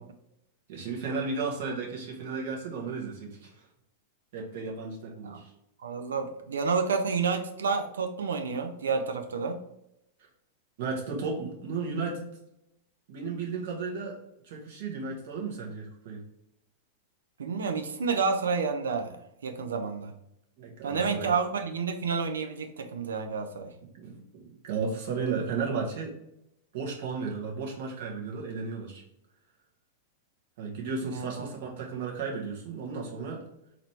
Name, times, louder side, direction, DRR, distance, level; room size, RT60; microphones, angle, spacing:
voice 1, 0.7-3.5 4.3-5.5 10.8-12.2 13.1-14.2 14.4-16.2 20.6-21.3 23.9-26.1 26.7-29.0 30.6-33.4, right 4 dB, 60° right, -1 dB, 1.4 m, -34 dB
voice 2, 5.8-9.6 17.4-20.1 20.8-23.7 31.0-31.5, right 5 dB, 75° right, 7 dB, 0.6 m, -30 dB
3.9 x 2.9 x 3.2 m, 0.82 s
hypercardioid pair, 100°, 0 cm